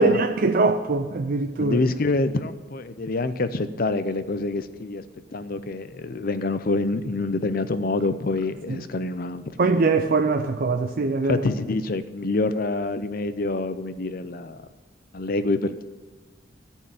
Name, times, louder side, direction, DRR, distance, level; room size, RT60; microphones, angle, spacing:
voice 1, 0.0-1.8 8.7-8.8 9.6-11.4, right 3 dB, 50° right, 5 dB, 0.5 m, -22 dB
voice 2, 1.6-5.0 5.3-9.4 11.2-14.6 15.1-15.8, left 2 dB, 50° left, 11 dB, 0.6 m, -26 dB
13.5 x 4.6 x 8.8 m, 1.4 s
head